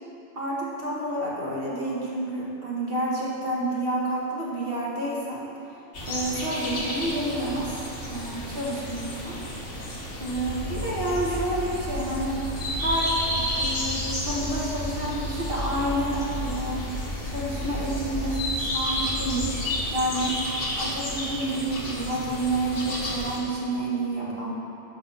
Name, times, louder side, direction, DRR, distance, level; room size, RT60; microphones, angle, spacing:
voice 1, 0.3-5.5 6.1-7.8 8.1-9.4 10.2-12.4 12.8-16.9 17.2-19.6 19.9-20.4 20.8-24.5, right 1 dB, 50° right, -6 dB, 2.0 m, -29 dB
sound 1, 5.9-23.4, left 1 dB, 75° left, 1.7 m, -32 dB
sound 2, 10.3-19.9, left 1 dB, 20° left, 1.4 m, -34 dB
11.0 x 4.2 x 6.8 m, 2.8 s
omnidirectional pair, 1.2 m